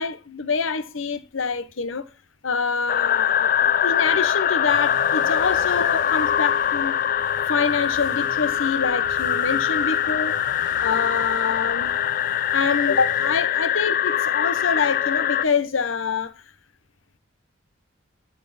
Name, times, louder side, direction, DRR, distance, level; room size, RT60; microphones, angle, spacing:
voice 1, 0.0-2.0 2.4-6.9 7.5-10.4 10.8-11.9 12.5-16.4, left 5 dB, 75° left, 0.8 m, -26 dB
sound 1, 2.9-15.5, left 9 dB, 45° left, 0.3 m, -23 dB
sound 2, 4.7-13.4, left 2 dB, 60° left, 1.3 m, -45 dB
13.0 x 4.4 x 4.1 m
head